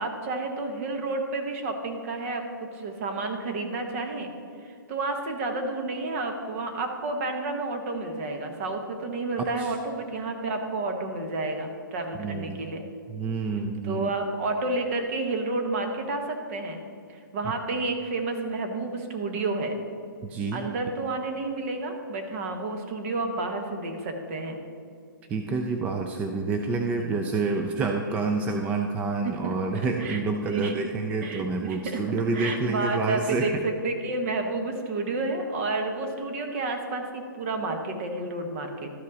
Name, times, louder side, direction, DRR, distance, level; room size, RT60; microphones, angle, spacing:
voice 1, 0.0-4.3 4.6-12.8 13.8-16.8 17.1-19.8 20.5-24.6 27.0-27.2 29.2-29.6 30.0-30.7 31.2-38.9, right 2 dB, 40° right, 4 dB, 1.3 m, -30 dB
voice 2, 12.2-12.7 13.1-14.1 20.2-20.7 25.3-33.4, right 3 dB, 10° right, 3 dB, 0.3 m, -28 dB
12.5 x 5.3 x 4.0 m, 2.4 s
hypercardioid pair, 150°, 11 cm